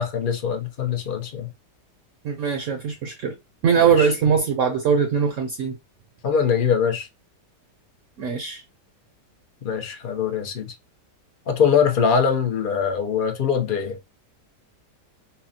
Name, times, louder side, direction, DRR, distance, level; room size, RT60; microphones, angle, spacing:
voice 1, 0.0-1.5 3.8-4.1 6.2-7.1 9.6-10.7 11.5-14.0, left 7 dB, 55° left, 0.6 m, -22 dB
voice 2, 2.2-3.4 3.6-5.8 8.2-8.6, right 6 dB, 65° right, 0.8 m, -21 dB
5.6 x 2.1 x 2.7 m
omnidirectional pair, 1.8 m